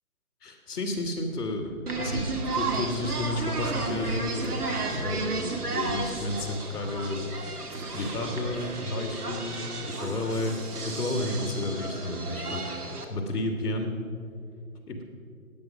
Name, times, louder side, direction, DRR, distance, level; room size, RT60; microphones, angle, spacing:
voice 1, 0.4-4.6 5.0-7.3 7.9-10.6 10.8-12.6 13.1-13.9 14.9-15.0, left 2 dB, 10° left, -9 dB, 1.6 m, -31 dB
sound 1, 1.9-13.0, right 3 dB, 80° right, 2.4 m, -33 dB
19.5 x 8.7 x 5.9 m, 2.4 s
hypercardioid pair, 170°, 45 cm